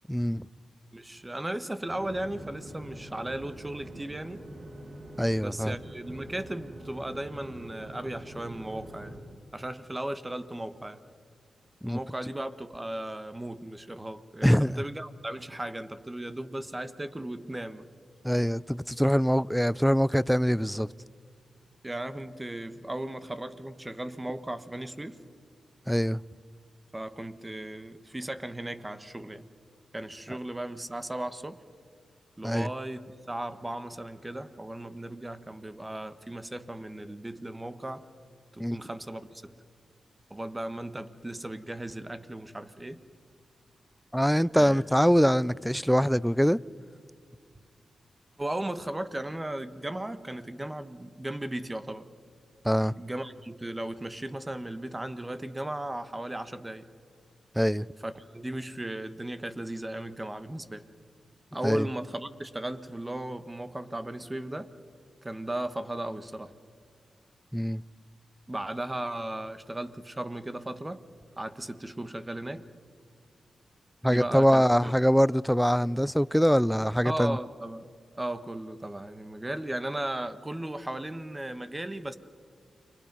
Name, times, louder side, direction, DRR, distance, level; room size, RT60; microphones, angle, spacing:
voice 1, 0.1-0.5 5.2-5.7 11.8-12.0 14.4-14.8 18.2-20.9 25.9-26.2 30.3-30.4 32.4-32.7 38.6-38.8 44.1-46.6 52.6-52.9 57.6-57.9 61.6-61.9 67.5-67.8 74.0-77.4, equal, ahead, 0.5 m, -23 dB
voice 2, 0.9-4.4 5.4-9.1 9.5-11.0 11.8-17.9 21.8-25.2 26.9-29.5 29.9-31.6 32.4-38.0 38.5-39.6 40.3-43.0 44.5-44.8 48.4-52.1 53.0-56.9 58.0-60.8 61.5-64.7 65.2-66.5 68.5-71.0 71.4-72.7 74.0-74.9 77.0-77.9 78.1-82.2, right 1 dB, 20° right, 1.4 m, -36 dB
sound 1, 1.9-9.2, right 1 dB, 60° right, 7.4 m, -44 dB
29.5 x 24.0 x 5.5 m
cardioid pair, 55°, 0 cm